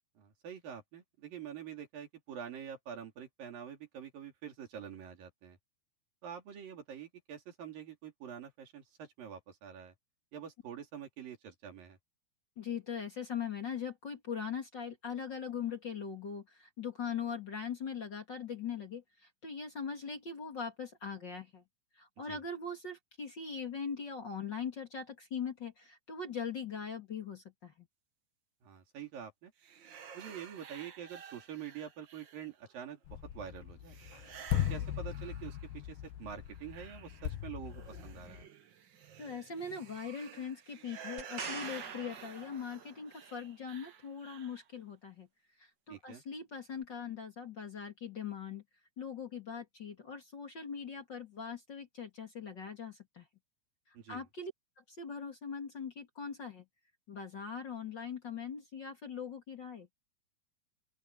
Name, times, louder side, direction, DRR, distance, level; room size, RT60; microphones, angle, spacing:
voice 1, 0.2-5.6 6.2-9.9 10.3-12.0 22.3-22.4 28.6-29.5 30.1-34.0 34.7-38.5 45.9-46.2 53.9-54.2, right 8 dB, 75° right, 4.7 m, -46 dB
voice 2, 12.6-21.6 22.0-27.9 39.2-45.3 45.6-48.6 49.0-53.3 54.1-54.5 54.8-56.6 57.1-59.9, left 6 dB, 35° left, 2.4 m, -41 dB
sound 1, 29.6-32.8 33.8-35.9 36.2-44.7, right 8 dB, 90° right, 1.0 m, -53 dB
sound 2, 33.1-38.4, left 12 dB, 90° left, 2.8 m, -38 dB
sound 3, 41.2-43.2 46.8-46.9, right 5 dB, 40° right, 1.5 m, -44 dB
open air
omnidirectional pair, 4.1 m